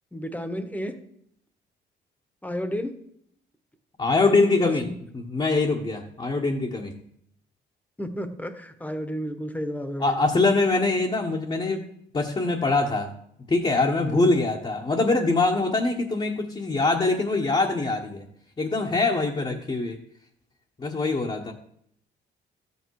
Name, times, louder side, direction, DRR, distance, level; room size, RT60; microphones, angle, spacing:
voice 1, 0.1-1.0 2.4-2.9 4.6-4.9 8.0-10.2 14.0-14.3 19.5-19.6, equal, 10° left, 9 dB, 1.4 m, -32 dB
voice 2, 4.0-4.9 5.1-6.9 10.0-11.8 12.1-13.1 13.5-18.2 18.6-20.0 20.8-21.5, left 3 dB, 25° left, 0 dB, 1.4 m, -23 dB
13.5 x 8.4 x 4.8 m, 0.72 s
cardioid pair, 90°, 20 cm